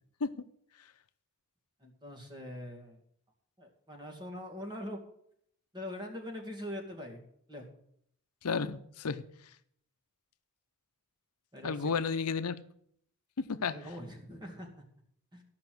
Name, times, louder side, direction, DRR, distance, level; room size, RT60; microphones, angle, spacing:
voice 1, 1.8-3.0 3.6-5.0 5.7-7.2 7.5-7.6 11.5-11.9 13.7-14.7 15.3-15.4, left 1 dB, 20° right, 2.3 m, -42 dB
voice 2, 8.4-9.2 11.6-12.6 13.4-13.8, left 5 dB, 80° left, 0.7 m, -32 dB
14.0 x 5.8 x 7.8 m
head